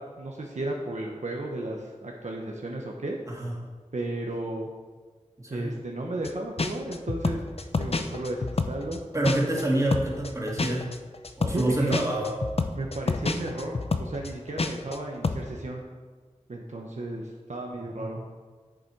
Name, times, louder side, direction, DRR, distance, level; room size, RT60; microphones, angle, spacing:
voice 1, 0.0-3.2 3.9-4.7 5.5-7.4 7.8-9.0 11.5-12.0 12.7-15.8 16.5-18.2, right 2 dB, 65° right, 0 dB, 0.9 m, -34 dB
voice 2, 5.4-5.8 9.1-10.9 11.4-12.4 17.8-18.1, right 1 dB, 25° right, -2 dB, 2.1 m, -27 dB
sound 1, 6.2-6.3 6.6-9.6 9.9-15.0 15.2-15.5, left 3 dB, 50° left, 0.6 m, -28 dB
7.5 x 7.2 x 4.6 m, 1.5 s
wide cardioid pair, 45°, 13 cm